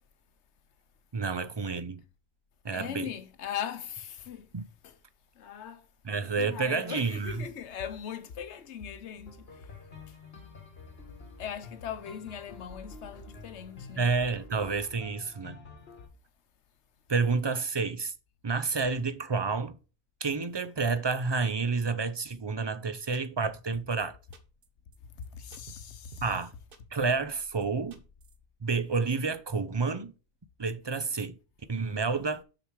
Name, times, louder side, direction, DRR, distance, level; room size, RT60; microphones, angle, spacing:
voice 1, 1.1-2.0 2.6-3.1 4.5-4.6 6.0-7.5 14.0-15.6 17.1-18.1 18.4-19.8 20.2-24.2 26.2-26.5 26.9-28.0 28.6-30.1 30.6-31.4 31.7-32.4, right 4 dB, 35° right, 0.5 m, -29 dB
voice 2, 2.7-4.5 4.8-5.0 5.4-5.9 6.2-9.8 10.1-10.2 11.4-14.1 25.3-26.2, left 9 dB, 85° left, 1.1 m, -40 dB
sound 1, 9.3-16.1, left 3 dB, 60° left, 2.1 m, -49 dB
sound 2, 23.1-24.1 24.3-24.7 24.9-25.0 25.2-25.3 25.5-25.9 26.1-26.5 26.7-27.3 27.6-28.4, right 6 dB, 55° right, 1.1 m, -50 dB
6.7 x 6.1 x 4.6 m
omnidirectional pair, 1.1 m